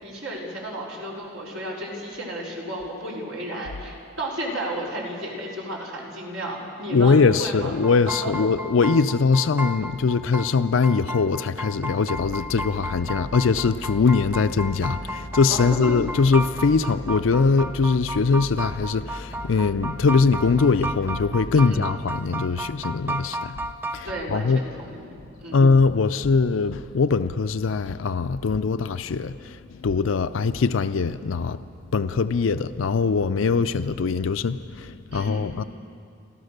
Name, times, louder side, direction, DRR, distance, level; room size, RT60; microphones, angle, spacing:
voice 1, 0.0-7.8 8.2-8.3 15.5-15.9 21.5-21.9 24.0-25.1 25.4-25.6 35.1-35.5, right 1 dB, 90° right, 4.6 m, -33 dB
voice 2, 6.9-23.5 23.9-24.6 25.5-31.6 31.9-35.6, left 4 dB, 85° left, 0.5 m, -22 dB
sound 1, 7.8-24.2, right 1 dB, 10° right, 0.6 m, -33 dB
sound 2, 12.1-21.7, equal, 50° left, 3.8 m, -39 dB
30.0 x 13.0 x 6.7 m
head